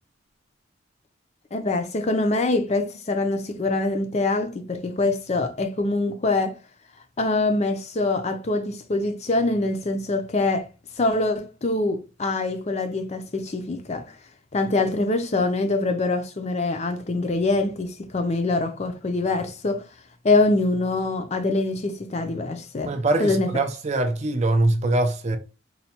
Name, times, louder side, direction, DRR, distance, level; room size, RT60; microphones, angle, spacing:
voice 1, 1.5-6.6 7.2-10.7 11.0-14.1 14.5-19.8 20.2-22.9 23.2-23.5, left 2 dB, 35° left, 0.4 m, -24 dB
voice 2, 22.8-25.4, right 2 dB, 35° right, 0.4 m, -23 dB
4.3 x 2.2 x 2.8 m
head